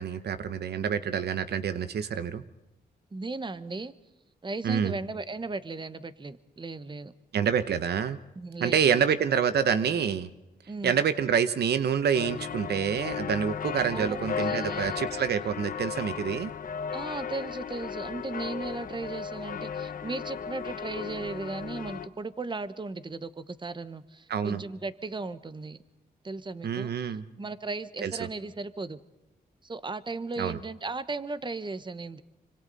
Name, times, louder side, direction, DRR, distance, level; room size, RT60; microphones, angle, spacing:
voice 1, 0.0-2.4 4.6-4.9 7.3-8.2 8.6-10.3 10.8-16.5 24.3-24.6 26.6-27.2 28.0-28.1 30.4-30.6, right 7 dB, 80° right, 12 dB, 1.0 m, -27 dB
voice 2, 3.1-3.9 4.4-7.1 8.3-9.1 10.7-11.0 13.9-15.0 16.9-25.8 26.2-26.9 27.4-29.0 29.6-32.2, right 3 dB, 30° right, 13 dB, 1.1 m, -36 dB
sound 1, 12.1-22.1, left 7 dB, 55° left, 1.1 m, -35 dB
26.0 x 25.0 x 4.1 m, 0.98 s
cardioid pair, 70°, 17 cm